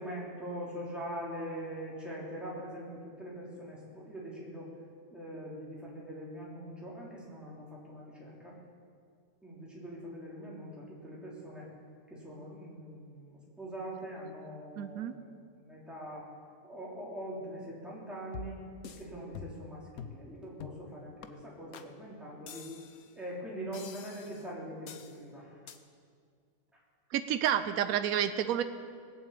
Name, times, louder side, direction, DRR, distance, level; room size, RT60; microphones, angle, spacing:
voice 1, 0.0-4.7 5.1-8.5 9.4-11.7 12.1-16.3 16.6-22.7 23.1-25.6, equal, ahead, -6 dB, 3.6 m, -43 dB
voice 2, 14.8-15.1 27.1-28.6, right 10 dB, 75° right, 10 dB, 1.1 m, -29 dB
sound 1, 18.3-19.0 19.3-19.7 20.0-20.2 20.6-20.9 21.2-21.3 21.7-21.9 22.5-23.1 23.7-24.4 24.9-25.2 25.7-25.8, left 7 dB, 80° left, 1.3 m, -46 dB
20.0 x 7.7 x 8.5 m, 2.1 s
omnidirectional pair, 1.5 m